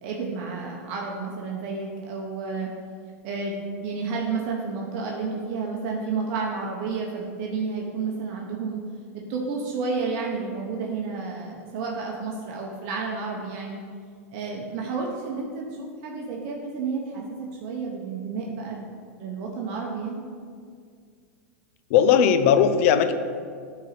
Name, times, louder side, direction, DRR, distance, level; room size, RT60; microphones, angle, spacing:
voice 1, 0.0-2.7 3.2-3.5 3.8-8.8 9.3-13.8 14.3-18.9 19.2-20.2, right 4 dB, 50° right, -1 dB, 0.9 m, -31 dB
voice 2, 21.9-23.1, left 8 dB, 60° left, 10 dB, 0.6 m, -18 dB
9.2 x 4.0 x 4.2 m, 2.1 s
hypercardioid pair, 125°, 8 cm